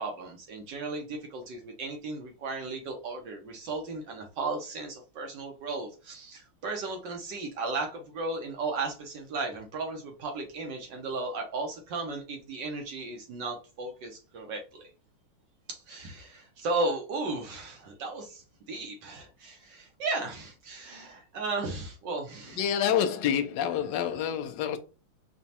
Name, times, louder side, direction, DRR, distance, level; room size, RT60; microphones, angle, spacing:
voice 1, 0.0-14.9 15.7-22.6, right 3 dB, 65° right, 1.3 m, -35 dB
voice 2, 22.6-24.8, left 9 dB, 75° left, 1.1 m, -27 dB
5.1 x 2.3 x 2.8 m
omnidirectional pair, 2.3 m